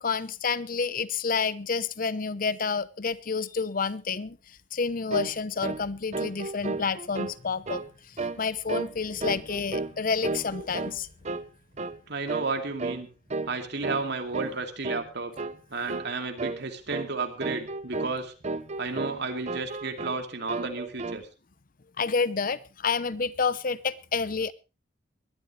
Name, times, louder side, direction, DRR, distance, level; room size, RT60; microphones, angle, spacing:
voice 1, 0.0-11.1 22.0-24.5, left 5 dB, 50° left, 0.8 m, -29 dB
sound 1, 5.1-5.4 5.6-5.9 6.1-7.4 7.7-7.9 8.2-8.4 8.7-8.9 9.2-10.0 10.2-11.0 11.2-11.5 11.8-12.0 12.3-12.5 12.8-13.0 13.3-13.6 13.8-14.0 14.3-14.6 14.8-15.1 15.4-15.6 15.9-16.1 16.4-16.6 16.9-17.1 17.4-18.2 18.4-19.2 19.5-20.2 20.5-21.2, right 3 dB, 35° right, 0.9 m, -33 dB
voice 2, 12.1-13.1 13.5-15.3 15.7-18.3 18.8-21.3, right 3 dB, 65° right, 2.5 m, -32 dB
21.0 x 12.5 x 3.3 m
head